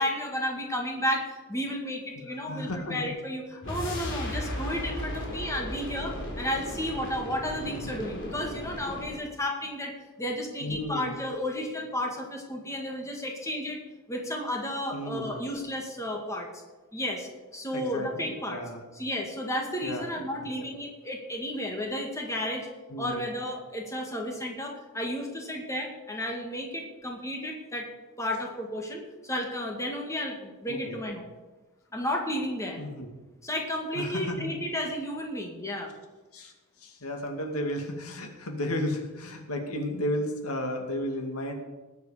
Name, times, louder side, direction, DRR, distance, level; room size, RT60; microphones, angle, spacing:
voice 1, 0.0-13.8 14.1-16.5 16.9-18.6 18.9-22.7 23.0-27.9 28.2-31.3 31.9-32.8 33.4-35.9, left 1 dB, 15° left, 1 dB, 2.0 m, -32 dB
voice 2, 2.2-3.0 3.5-3.6 7.6-7.9 10.6-11.2 14.9-15.4 17.7-18.8 19.8-20.1 20.6-20.7 22.9-23.2 30.7-31.0 32.8-33.1 33.9-34.6 36.3-36.5 36.8-41.5, left 1 dB, 90° left, 3 dB, 2.2 m, -33 dB
sound 1, 3.6-9.2, left 1 dB, 60° left, 3.6 m, -36 dB
19.0 x 8.3 x 5.0 m, 1.2 s
head